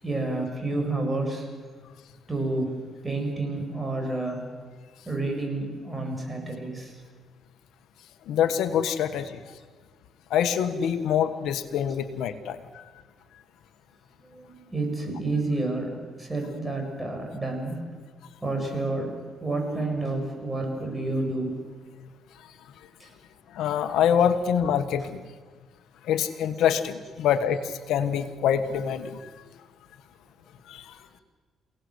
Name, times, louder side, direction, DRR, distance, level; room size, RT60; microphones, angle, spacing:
voice 1, 0.0-1.5 2.3-2.8 3.0-4.4 5.1-6.9 10.8-10.9 14.3-17.8 18.4-21.6 23.0-23.1 24.2-24.3, right 2 dB, 20° right, 2 dB, 7.9 m, -30 dB
voice 2, 8.3-9.4 10.3-12.8 22.4-22.5 23.5-25.2 26.0-29.3 30.7-30.9, left 8 dB, 85° left, 9 dB, 1.4 m, -25 dB
29.0 x 18.0 x 8.0 m, 1.5 s
cardioid pair, 90°, 0 cm